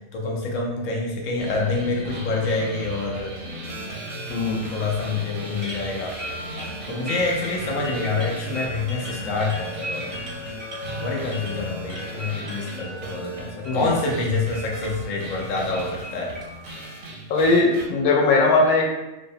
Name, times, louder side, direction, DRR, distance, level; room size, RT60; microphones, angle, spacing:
voice 1, 0.1-3.3 4.5-6.1 6.9-10.2 11.0-16.3, left 3 dB, 70° left, -1 dB, 0.4 m, -27 dB
sound 1, 1.4-17.9, right 1 dB, 85° right, 1.0 m, -36 dB
voice 2, 4.3-4.6 13.6-13.9 17.3-18.8, left 3 dB, 90° left, -1 dB, 1.0 m, -19 dB
sound 2, 5.4-16.8, equal, 35° right, 0.4 m, -38 dB
2.6 x 2.0 x 2.7 m, 1.0 s
omnidirectional pair, 1.4 m